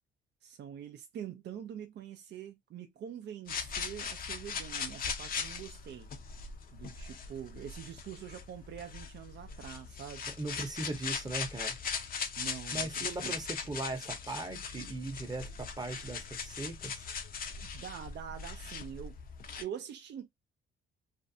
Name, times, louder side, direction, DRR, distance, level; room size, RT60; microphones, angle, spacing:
voice 1, 0.4-6.1 6.7-10.2 12.4-13.4 17.6-19.2 19.6-20.3, right 9 dB, 60° right, 0.5 m, -45 dB
sound 1, 3.5-19.6, left 6 dB, 45° left, 0.5 m, -40 dB
voice 2, 10.4-11.8 12.7-17.0, right 2 dB, 20° right, 0.8 m, -39 dB
2.5 x 2.1 x 2.6 m
cardioid pair, 90°, 20 cm